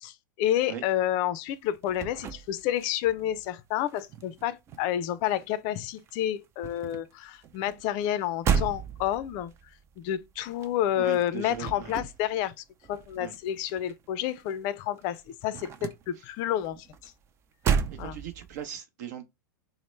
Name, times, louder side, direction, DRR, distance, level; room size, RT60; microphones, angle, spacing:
voice 1, 0.0-9.5 10.0-12.5 12.9-17.1 18.0-18.2, left 11 dB, 40° left, 0.4 m, -30 dB
sound 1, 1.5-3.5 3.8-5.7 6.0-14.7 14.9-18.6, right 7 dB, 25° right, 0.4 m, -34 dB
voice 2, 10.9-11.9 13.1-13.3 16.2-16.3 17.9-19.3, right 9 dB, 55° right, 0.8 m, -39 dB
2.9 x 2.0 x 3.1 m
figure-of-eight pair, 100°, 11 cm